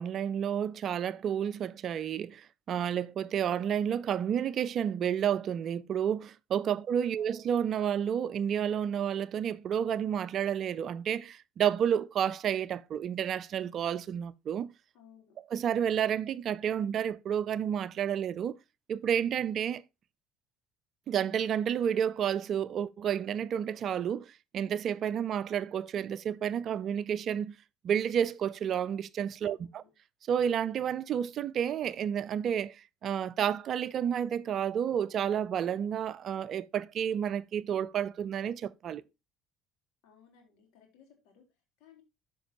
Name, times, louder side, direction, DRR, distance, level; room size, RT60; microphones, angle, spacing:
voice 1, 0.0-14.7 15.5-18.5 18.9-19.8 21.1-27.6 27.8-29.8 30.3-39.0, right 9 dB, 50° right, 0.5 m, -30 dB
voice 2, 6.6-7.1 14.9-15.4 29.4-29.9 40.0-41.4 41.8-42.0, left 8 dB, 65° left, 3.8 m, -60 dB
12.0 x 5.3 x 2.8 m
hypercardioid pair, 65°, 0 cm